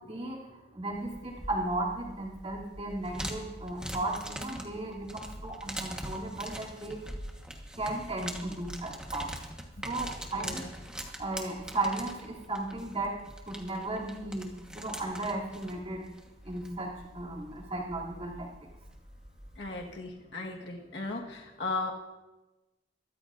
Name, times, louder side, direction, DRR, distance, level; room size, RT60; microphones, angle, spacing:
voice 1, 0.7-7.0 7.8-9.3 9.8-10.6 11.2-13.1 13.5-14.5 14.7-16.0 16.5-18.5, right 2 dB, 30° right, -3 dB, 2.9 m, -35 dB
sound 1, 0.9-20.0, equal, 5° right, 1.3 m, -43 dB
voice 2, 10.3-10.7 19.6-21.9, left 3 dB, 65° left, 0 dB, 1.5 m, -36 dB
23.0 x 14.0 x 2.6 m, 1.1 s
head